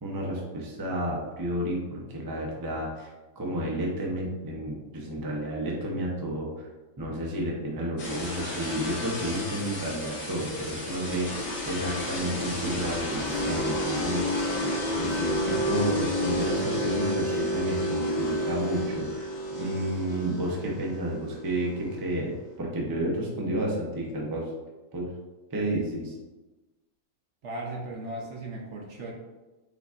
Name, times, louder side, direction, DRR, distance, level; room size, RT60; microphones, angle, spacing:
voice 1, 0.0-3.1 3.4-6.7 7.0-11.3 11.7-14.6 14.9-24.5 24.9-25.1 25.5-26.1, right 1 dB, 25° right, -3 dB, 0.4 m, -31 dB
sound 1, 8.0-22.5, equal, 60° left, 1.7 m, -31 dB
voice 2, 27.4-29.1, right 2 dB, 60° right, -1 dB, 0.9 m, -36 dB
6.6 x 2.7 x 2.4 m, 1.1 s
omnidirectional pair, 1.6 m